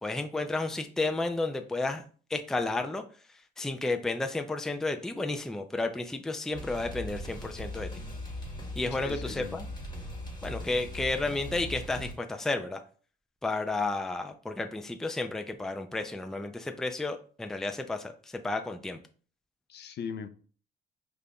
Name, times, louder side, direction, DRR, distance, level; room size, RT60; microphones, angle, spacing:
voice 1, 0.0-2.0 2.3-3.0 3.6-7.9 8.8-9.7 10.4-12.8 13.4-18.1 18.4-19.0, left 2 dB, ahead, 0.4 m, -32 dB
sound 1, 6.5-12.1, left 1 dB, 20° left, 1.2 m, -39 dB
voice 2, 9.0-9.7 19.7-20.3, left 6 dB, 60° left, 0.5 m, -40 dB
5.1 x 2.5 x 2.3 m
cardioid pair, 90°, 20 cm